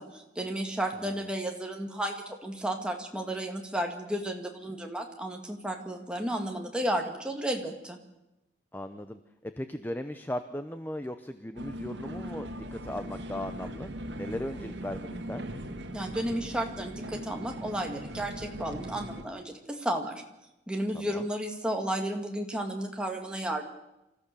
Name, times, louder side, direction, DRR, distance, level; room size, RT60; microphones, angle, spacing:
voice 1, 0.0-8.0 15.9-20.2 20.7-23.7, right 1 dB, 5° right, 2 dB, 2.3 m, -33 dB
voice 2, 8.7-15.4 20.9-21.2, left 1 dB, 10° left, 9 dB, 0.7 m, -38 dB
sound 1, 11.6-19.2, right 1 dB, 65° right, 2.1 m, -40 dB
26.5 x 14.5 x 6.9 m, 0.93 s
head